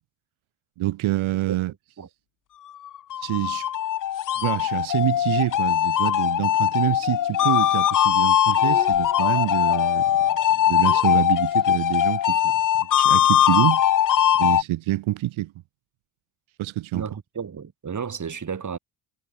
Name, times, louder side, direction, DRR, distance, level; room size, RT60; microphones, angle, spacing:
voice 1, 0.8-1.7 3.2-3.7 4.4-13.8 14.4-15.5 16.6-17.1, right 16 dB, 80° right, 1.3 m, -27 dB
sound 1, 2.8-14.6, left 11 dB, 40° left, 0.7 m, -21 dB
sound 2, 4.1-5.6, left 11 dB, 60° left, 2.5 m, -46 dB
sound 3, 6.9-7.4 7.8-8.3 8.5-9.7 10.7-11.9, left 2 dB, 10° left, 2.0 m, -44 dB
voice 2, 16.9-18.8, right 6 dB, 40° right, 3.5 m, -32 dB
cardioid pair, 95°, 48 cm